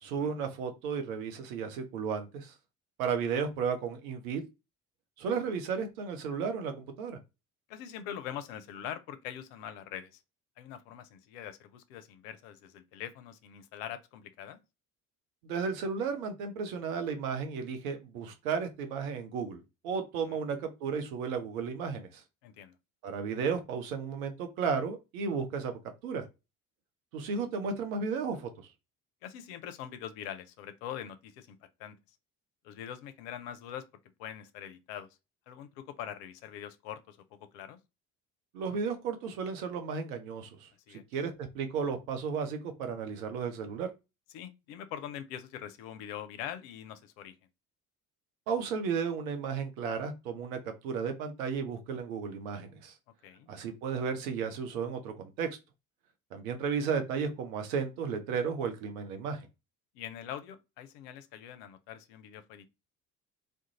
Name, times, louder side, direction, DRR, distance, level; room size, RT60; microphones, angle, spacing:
voice 1, 0.0-2.5 3.0-4.4 5.2-7.2 15.4-22.2 23.0-25.7 26.0-26.3 27.1-28.5 38.5-40.7 41.1-43.9 48.5-52.9 53.5-55.5 56.3-59.5, right 6 dB, 65° right, 0.7 m, -34 dB
voice 2, 7.7-10.2 10.6-14.6 20.3-20.4 22.4-22.7 29.2-32.0 32.6-33.9 34.2-35.1 35.5-37.8 40.9-41.0 44.3-47.3 53.2-53.5 59.9-62.7, left 10 dB, 60° left, 0.5 m, -43 dB
2.4 x 2.2 x 2.9 m
figure-of-eight pair, 55°, 45 cm